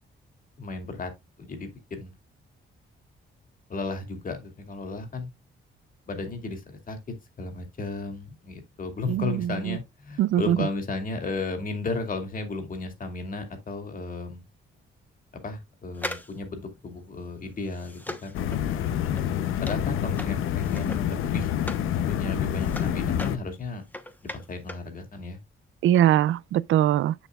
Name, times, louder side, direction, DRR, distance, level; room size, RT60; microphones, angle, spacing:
voice 1, 0.6-1.1 1.4-2.1 3.7-5.3 6.1-7.0 7.4-14.4 15.4-18.4 19.4-21.5 22.1-23.8 24.3-25.4, left 3 dB, 45° left, 2.3 m, -34 dB
voice 2, 9.1-9.8 10.2-10.6 25.8-27.1, right 12 dB, 80° right, 0.4 m, -22 dB
sound 1, 15.9-21.9 22.3-24.9 25.2-25.3, left 1 dB, 10° left, 1.1 m, -40 dB
sound 2, 18.3-23.4, left 10 dB, 90° left, 0.7 m, -27 dB
7.8 x 7.1 x 2.4 m
cardioid pair, 90°, 20 cm